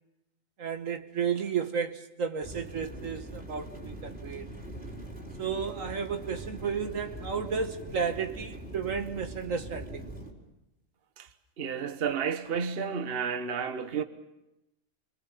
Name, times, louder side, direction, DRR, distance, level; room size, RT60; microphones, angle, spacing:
voice 1, 0.6-4.5 5.4-10.1, right 6 dB, 60° right, 1.5 m, -33 dB
sound 1, 2.4-10.3, right 1 dB, 5° right, 4.5 m, -42 dB
voice 2, 11.6-14.0, right 6 dB, 45° right, 1.3 m, -31 dB
29.0 x 22.5 x 7.3 m
omnidirectional pair, 1.6 m